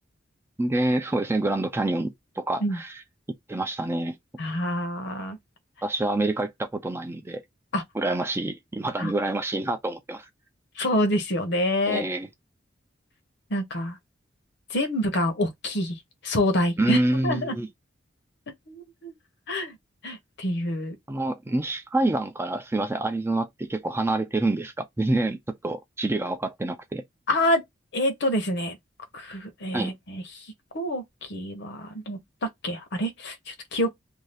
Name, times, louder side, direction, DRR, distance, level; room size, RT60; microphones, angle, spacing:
voice 1, 0.6-2.9 3.5-4.2 5.8-7.4 7.9-10.3 11.8-12.3 16.8-17.7 21.1-27.0 29.7-29.9, right 2 dB, 15° right, 0.4 m, -27 dB
voice 2, 4.4-5.4 7.7-7.8 9.0-9.1 10.8-12.1 13.5-14.0 14.7-17.5 18.7-19.1 19.5-19.8 20.0-20.9 27.3-27.6 27.9-28.8 29.1-30.5 30.7-33.9, left 1 dB, 65° left, 0.9 m, -27 dB
2.6 x 2.3 x 3.3 m
head